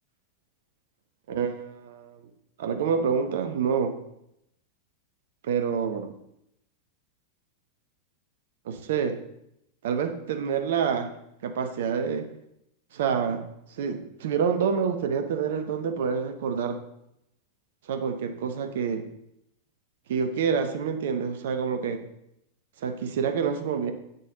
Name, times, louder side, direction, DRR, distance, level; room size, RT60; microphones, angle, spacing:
voice 1, 1.3-2.2 2.6-3.9 5.4-6.1 8.7-9.2 9.8-11.1 11.4-12.3 12.9-13.4 13.8-16.8 17.9-19.1 20.1-22.0 22.8-23.9, right 6 dB, 55° right, 8 dB, 0.9 m, -27 dB
8.4 x 6.7 x 3.8 m, 0.80 s
figure-of-eight pair, 90°, 0 cm